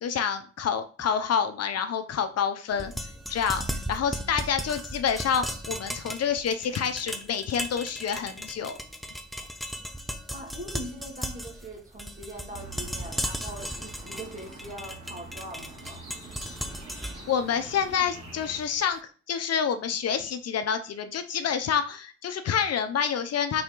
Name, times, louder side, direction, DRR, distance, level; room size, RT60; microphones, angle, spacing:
voice 1, 0.0-2.9 3.3-8.8 17.3-19.0 19.3-23.6, left 7 dB, 60° left, 0.9 m, -28 dB
sound 1, 2.7-18.8, equal, ahead, 0.6 m, -37 dB
voice 2, 10.3-16.0, right 1 dB, 30° right, 2.2 m, -41 dB
sound 2, 12.5-18.6, right 3 dB, 60° right, 2.5 m, -45 dB
6.1 x 4.4 x 3.9 m
cardioid pair, 115°, 29 cm